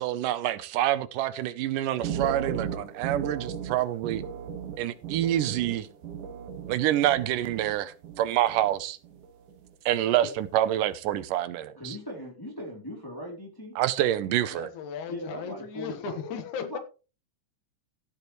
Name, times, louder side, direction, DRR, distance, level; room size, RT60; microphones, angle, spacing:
voice 1, 0.0-4.2 4.8-5.9 6.7-9.0 9.9-12.0 13.8-14.7, right 12 dB, 90° right, 2.4 m, -27 dB
sound 1, 1.9-7.8 8.0-8.7 9.0-9.5, right 7 dB, 75° right, 3.1 m, -36 dB
voice 2, 11.8-13.8 15.1-16.1 16.6-16.8, equal, 5° left, 2.7 m, -39 dB
voice 3, 14.4-16.8, left 6 dB, 70° left, 2.8 m, -36 dB
15.5 x 8.0 x 3.2 m
omnidirectional pair, 3.7 m